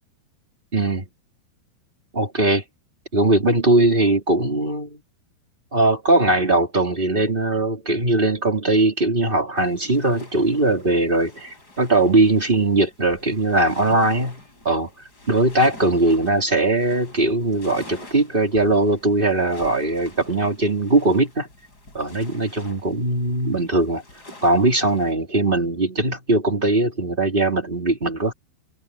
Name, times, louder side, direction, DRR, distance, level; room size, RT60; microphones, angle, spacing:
voice 1, 0.7-1.1 2.1-2.6 3.1-5.0 5.7-14.9 15.3-21.5 21.9-24.0 24.4-28.3, right 2 dB, 15° right, 2.3 m, -20 dB
sound 1, 9.6-25.1, left 1 dB, 20° left, 7.7 m, -46 dB
omnidirectional pair, 5.1 m